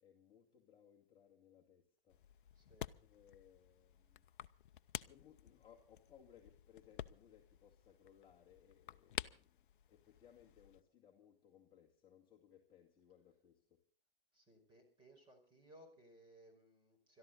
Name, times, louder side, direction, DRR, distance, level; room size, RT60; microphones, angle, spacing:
voice 1, 0.0-2.2 3.0-4.3 5.1-13.8, left 9 dB, 15° left, -2 dB, 2.1 m, -65 dB
sound 1, 2.1-10.8, left 10 dB, 60° left, 0.7 m, -51 dB
voice 2, 2.5-2.9 14.3-17.2, right 1 dB, 15° right, 3 dB, 5.0 m, -63 dB
22.0 x 13.5 x 4.1 m, 0.43 s
hypercardioid pair, 140°, 30 cm